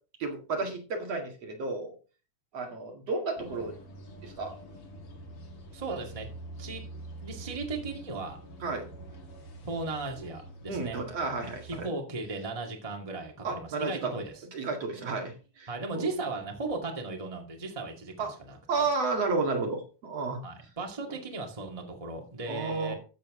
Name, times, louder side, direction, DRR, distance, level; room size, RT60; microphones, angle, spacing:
voice 1, 0.2-1.9 2.5-3.7 4.2-4.5 8.6-8.9 10.7-11.9 13.4-14.2 14.5-16.1 18.2-18.3 18.7-20.4 22.5-23.0, right 3 dB, 60° right, 2 dB, 3.0 m, -32 dB
sound 1, 3.4-11.8, right 2 dB, 50° left, 3.1 m, -46 dB
voice 2, 5.7-6.3 6.6-6.8 7.2-8.4 9.6-11.0 11.6-14.4 15.7-18.9 20.4-22.9, right 3 dB, 15° right, 2 dB, 1.8 m, -36 dB
13.5 x 7.5 x 3.7 m, 0.35 s
omnidirectional pair, 3.4 m